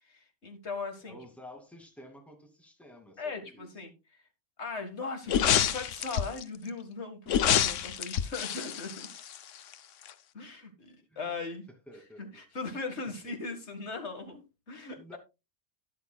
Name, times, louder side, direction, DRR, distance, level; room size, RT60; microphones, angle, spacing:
voice 1, 0.1-1.2 3.2-3.9 4.6-9.1 10.3-11.6 12.2-15.2, left 4 dB, 65° left, 2.1 m, -39 dB
voice 2, 1.0-3.7 11.1-11.4 11.9-12.4 13.2-13.3 15.0-15.2, left 1 dB, ahead, 2.5 m, -51 dB
sound 1, 5.3-6.4 7.3-9.7 10.1-10.2, left 9 dB, 90° left, 1.1 m, -27 dB
12.0 x 10.5 x 2.3 m
omnidirectional pair, 1.2 m